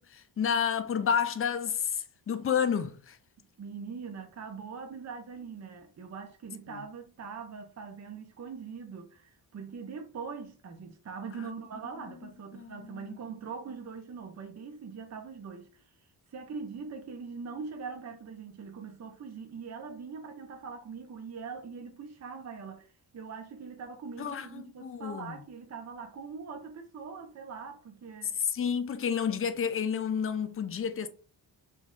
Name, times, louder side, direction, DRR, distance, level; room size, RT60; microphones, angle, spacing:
voice 1, 0.0-3.2 6.7-6.8 11.4-11.5 12.5-13.2 24.2-25.4 28.4-31.1, left 7 dB, 35° left, 0.5 m, -30 dB
voice 2, 3.6-15.9 16.3-28.4, right 5 dB, 40° right, 0.6 m, -42 dB
3.0 x 2.6 x 3.6 m
cardioid pair, 90°, 41 cm